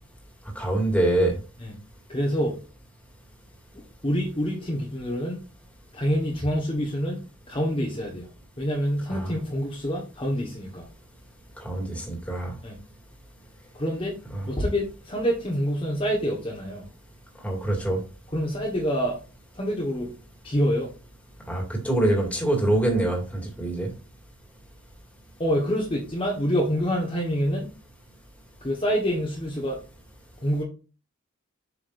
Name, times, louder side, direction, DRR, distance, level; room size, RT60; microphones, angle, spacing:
voice 1, 0.6-1.3 9.1-9.3 11.6-12.5 14.3-14.4 17.4-18.0 21.5-23.9, right 1 dB, 5° left, 2.2 m, -25 dB
voice 2, 2.1-2.6 4.0-5.4 5.9-7.2 7.5-8.3 8.6-10.9 12.6-12.8 13.7-14.1 14.4-16.8 18.3-19.2 19.5-20.1 20.4-20.9 25.4-27.7 28.6-29.8 30.4-30.6, equal, 25° left, 1.3 m, -26 dB
8.0 x 5.8 x 2.6 m
head